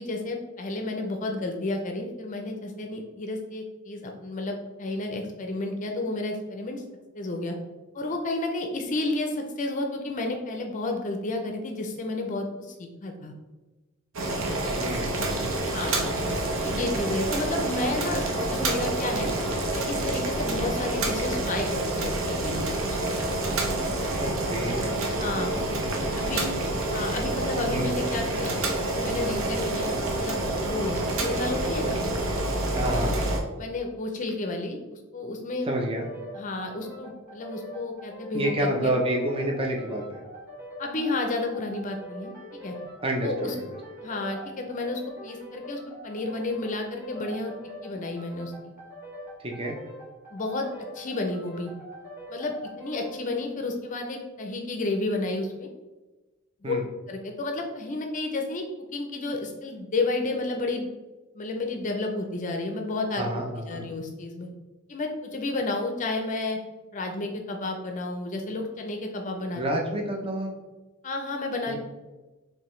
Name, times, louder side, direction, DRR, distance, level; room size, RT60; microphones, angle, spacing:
voice 1, 0.0-6.8 7.1-7.6 7.9-13.3 15.7-16.0 16.6-19.3 19.7-23.3 25.2-25.6 26.2-26.5 26.9-28.6 28.9-32.0 33.6-35.7 36.3-39.0 40.8-42.8 43.2-43.5 44.0-47.5 47.8-48.7 50.3-50.7 50.9-51.7 52.3-55.7 56.6-56.7 57.1-58.7 58.9-60.9 61.3-64.5 64.9-66.6 66.9-69.6 71.0-71.8, left 2 dB, 40° left, 3 dB, 0.5 m, -31 dB
Boiling, 14.1-33.4, right 2 dB, 80° right, 0.8 m, -28 dB
voice 2, 14.8-15.1 24.2-26.3 27.7-27.9 32.7-33.1 35.7-36.1 38.3-40.2 43.0-43.6 49.4-49.7 56.6-56.9 63.2-63.9 69.5-70.5 71.7-71.8, right 1 dB, 25° right, 1 dB, 0.5 m, -29 dB
sound 1, 35.8-53.2, equal, 10° right, 1.2 m, -43 dB
4.7 x 3.2 x 3.1 m, 1.2 s
head